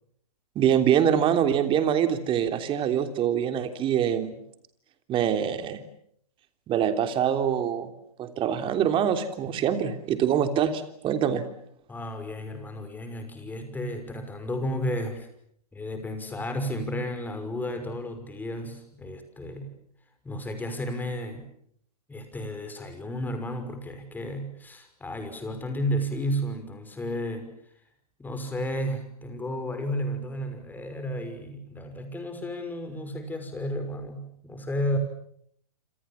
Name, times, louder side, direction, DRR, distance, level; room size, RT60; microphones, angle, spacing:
voice 1, 0.5-4.3 5.1-5.8 6.7-7.9 8.2-11.4, right 9 dB, 25° right, 8 dB, 3.3 m, -24 dB
voice 2, 11.9-15.3 15.7-19.7 20.2-21.5 22.1-27.5 28.2-35.0, equal, 10° left, 8 dB, 5.9 m, -32 dB
28.0 x 27.0 x 7.3 m, 0.68 s
hypercardioid pair, 120°, 20 cm